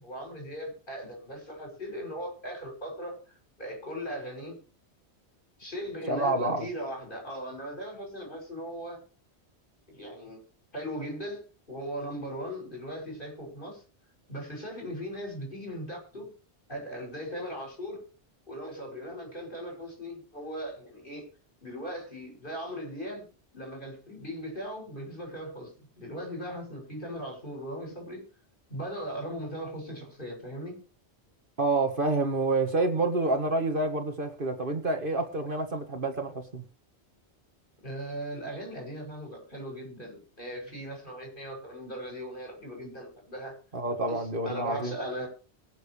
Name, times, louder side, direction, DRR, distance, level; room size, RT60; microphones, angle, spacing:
voice 1, 0.0-4.6 5.6-9.0 9.9-10.4 10.7-13.8 14.3-16.3 16.7-18.0 18.5-21.3 21.6-28.3 28.7-30.8 37.8-43.6 44.1-45.3, equal, 50° left, 1 dB, 6.9 m, -38 dB
voice 2, 6.1-6.7 31.6-36.6 43.7-44.9, right 2 dB, 50° right, 6 dB, 2.1 m, -28 dB
24.0 x 8.0 x 3.3 m, 0.35 s
omnidirectional pair, 1.1 m